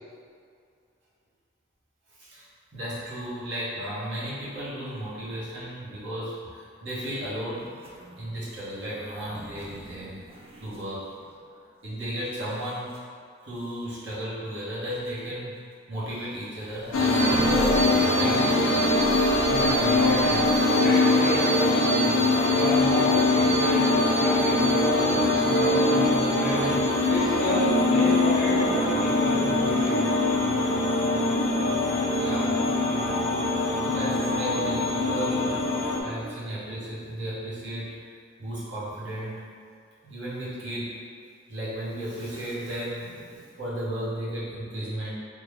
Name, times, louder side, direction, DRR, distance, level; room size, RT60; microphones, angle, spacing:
voice 1, 2.1-7.7 8.2-10.2 10.6-11.1 11.8-13.0 13.4-15.6 15.9-18.6 21.3-21.4 29.7-30.5 32.0-32.6 32.9-33.0 33.7-35.6 36.0-38.0 38.4-39.4 40.0-41.0 41.5-45.1, right 1 dB, 60° right, -9 dB, 1.0 m, -35 dB
sound 1, 7.7-11.6 12.3-13.0 14.1-14.2 14.9-15.1 16.2-16.3 16.5-21.0 22.9-23.6, right 1 dB, 30° right, 0.4 m, -38 dB
sound 2, 16.9-36.0, left 2 dB, 90° left, 0.4 m, -22 dB
voice 2, 19.4-20.5 20.8-22.2 22.5-30.1, equal, 40° left, -7 dB, 0.7 m, -31 dB
3.4 x 2.1 x 3.4 m, 2.2 s
head